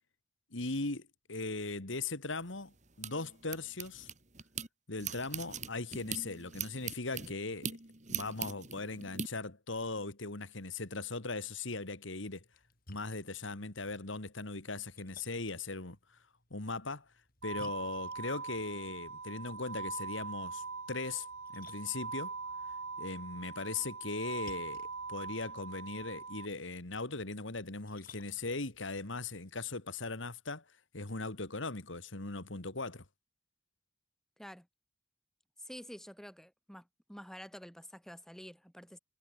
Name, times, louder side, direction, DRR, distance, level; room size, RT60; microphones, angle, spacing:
voice 1, 0.5-4.1 4.9-7.8 8.1-12.4 12.9-16.0 16.5-17.1 17.4-21.3 21.5-22.3 23.0-30.6 30.9-33.0, left 3 dB, 75° left, 2.3 m, -39 dB
sound 1, 2.3-4.7 5.0-9.3, right 7 dB, 35° right, 3.6 m, -41 dB
Splash splatter, 12.4-29.5, left 3 dB, 45° left, 7.5 m, -61 dB
sound 2, 17.4-26.5, right 4 dB, 85° right, 3.9 m, -42 dB
voice 2, 34.4-34.7 35.6-39.0, equal, ahead, 4.3 m, -49 dB
head